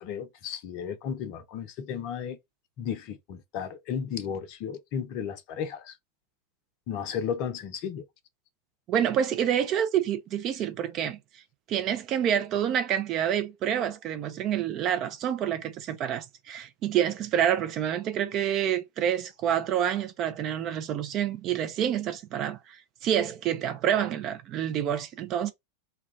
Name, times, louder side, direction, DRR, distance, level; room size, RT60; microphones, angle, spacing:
voice 1, 0.0-2.4 2.8-6.0 6.9-8.0, left 8 dB, 45° left, 0.5 m, -34 dB
voice 2, 8.9-11.2 11.7-22.8 23.0-25.5, right 9 dB, 35° right, 0.5 m, -28 dB
2.3 x 2.2 x 3.2 m
figure-of-eight pair, 90°, 0 cm